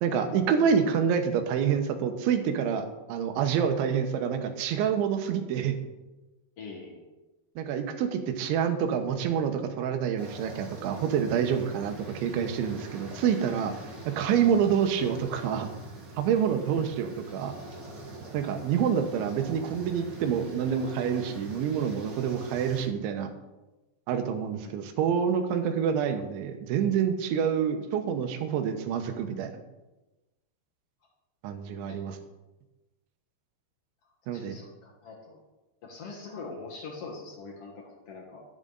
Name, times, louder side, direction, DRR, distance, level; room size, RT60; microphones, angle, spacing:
voice 1, 0.0-5.8 7.6-13.7 14.1-15.7 16.2-17.6 18.3-23.3 24.1-29.5 31.4-32.2 34.3-34.6, right 7 dB, 85° right, 7 dB, 3.4 m, -27 dB
voice 2, 6.6-7.1 16.4-16.5 24.6-24.7 34.3-35.4 35.8-38.4, left 4 dB, 80° left, -2 dB, 1.3 m, -43 dB
sound 1, 10.2-22.9, right 1 dB, 55° right, 1.2 m, -44 dB
11.5 x 10.5 x 4.0 m, 1.1 s
omnidirectional pair, 5.2 m